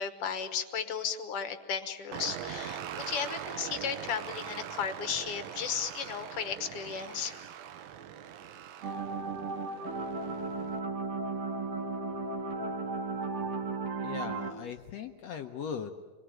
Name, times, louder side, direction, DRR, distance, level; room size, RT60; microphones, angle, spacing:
voice 1, 0.0-7.4, left 7 dB, 55° left, 9 dB, 1.7 m, -35 dB
sound 1, 2.1-10.8, right 9 dB, 80° right, 2.7 m, -42 dB
sound 2, 8.8-14.5, right 3 dB, 50° right, 2.0 m, -35 dB
voice 2, 14.0-16.0, left 7 dB, 75° left, 5 dB, 1.5 m, -39 dB
26.0 x 21.0 x 9.1 m, 1.4 s
omnidirectional pair, 4.1 m